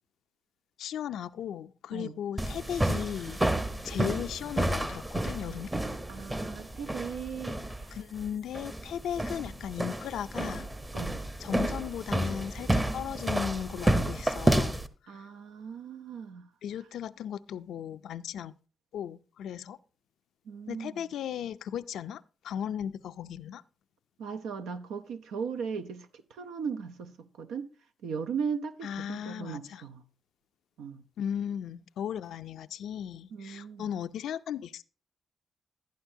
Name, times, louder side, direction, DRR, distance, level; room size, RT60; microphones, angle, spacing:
voice 1, 0.8-3.5 3.8-5.7 7.9-10.7 11.4-15.3 16.6-18.5 18.9-19.8 20.7-23.6 28.8-29.8 31.2-34.8, left 9 dB, 80° left, 0.3 m, -36 dB
sound 1, 2.4-14.9, right 1 dB, 20° right, 0.9 m, -30 dB
voice 2, 6.1-8.0 10.9-11.2 15.1-16.4 20.5-21.0 24.2-27.7 28.0-30.0 30.8-31.0 33.3-33.9, right 6 dB, 90° right, 0.5 m, -38 dB
11.5 x 10.5 x 2.7 m
supercardioid pair, 55°, 0 cm